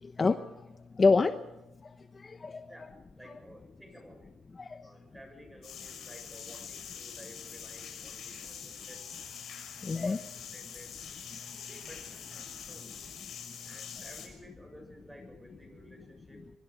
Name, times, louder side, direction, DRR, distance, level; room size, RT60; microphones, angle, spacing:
voice 1, 0.0-0.7 0.9-1.5 1.8-2.7 4.6-4.9 9.8-10.2, left 4 dB, 30° left, 9 dB, 1.0 m, -28 dB
voice 2, 2.7-4.3 4.8-9.1 10.2-11.0 11.6-13.0 13.6-16.4, equal, 10° right, 6 dB, 6.9 m, -54 dB
sound 1, 5.6-14.3, left 7 dB, 60° left, 6.5 m, -45 dB
25.0 x 23.5 x 5.0 m, 0.95 s
cardioid pair, 90°, 0 cm